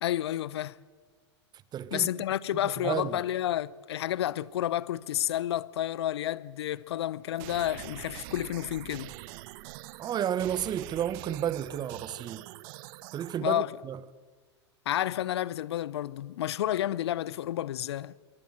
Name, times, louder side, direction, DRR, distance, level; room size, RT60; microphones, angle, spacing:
voice 1, 0.0-0.8 1.9-9.1 13.4-13.7 14.9-18.1, left 12 dB, 65° left, 0.8 m, -30 dB
voice 2, 1.7-2.1 2.6-3.2 10.0-12.4 13.1-14.0, right 10 dB, 30° right, 1.2 m, -32 dB
sound 1, 7.4-13.4, right 19 dB, 45° right, 0.9 m, -44 dB
25.0 x 23.5 x 7.8 m
figure-of-eight pair, 95°, 15 cm